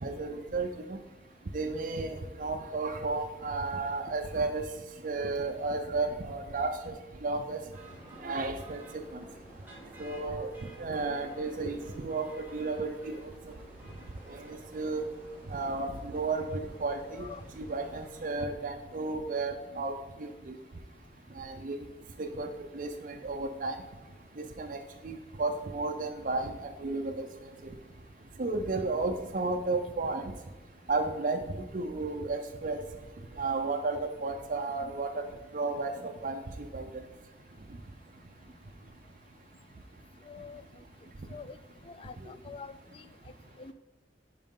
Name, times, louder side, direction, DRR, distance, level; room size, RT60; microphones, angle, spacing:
voice 1, 0.0-1.0 1.5-4.6 5.0-6.9 7.2-7.6 8.2-8.8 10.0-10.5 10.8-13.2 14.4-15.0 15.5-17.3 17.6-19.9 20.2-20.5 21.4-21.8 22.2-23.8 24.4-24.8 25.0-27.3 28.4-30.2 30.9-31.4 31.7-32.8 33.4-35.2 35.5-35.9 36.2-36.4 36.7-36.9, right 3 dB, 50° right, 4 dB, 0.5 m, -33 dB
sound 1, 7.7-18.5, right 1 dB, 10° right, 1.7 m, -51 dB
voice 2, 40.3-40.6 41.3-41.6 41.9-42.7 43.6-43.7, left 5 dB, 30° left, 13 dB, 0.3 m, -44 dB
10.5 x 4.7 x 3.8 m, 1.2 s
head